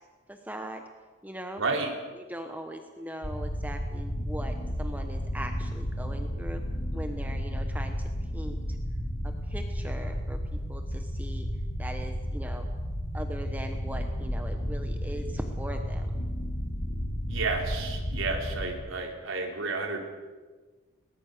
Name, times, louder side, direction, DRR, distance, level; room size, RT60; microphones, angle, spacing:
voice 1, 0.3-0.8 1.2-1.6 2.1-6.6 6.9-8.6 9.2-11.5 11.8-12.7 13.1-16.1, right 1 dB, 10° right, 5 dB, 1.1 m, -40 dB
voice 2, 1.6-1.9 17.3-20.0, right 3 dB, 75° right, 1 dB, 3.9 m, -31 dB
sound 1, 3.2-18.7, equal, 55° left, 2.8 m, -32 dB
22.0 x 19.5 x 6.7 m, 1.4 s
head